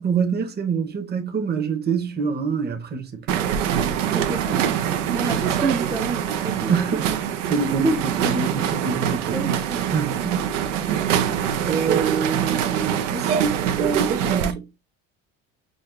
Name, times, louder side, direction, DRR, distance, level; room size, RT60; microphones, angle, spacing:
voice 1, 0.0-3.4 6.7-7.0 7.5-9.6 9.9-10.5 10.9-11.1 11.7-14.7, right 6 dB, 30° right, 0.9 m, -26 dB
sound 1, 3.3-14.5, right 9 dB, 90° right, 0.6 m, -24 dB
voice 2, 4.1-4.8 5.1-7.2 7.8-8.0 9.3-9.9, right 2 dB, 10° right, 0.6 m, -28 dB
6.3 x 2.3 x 2.4 m
supercardioid pair, 90°, 35 cm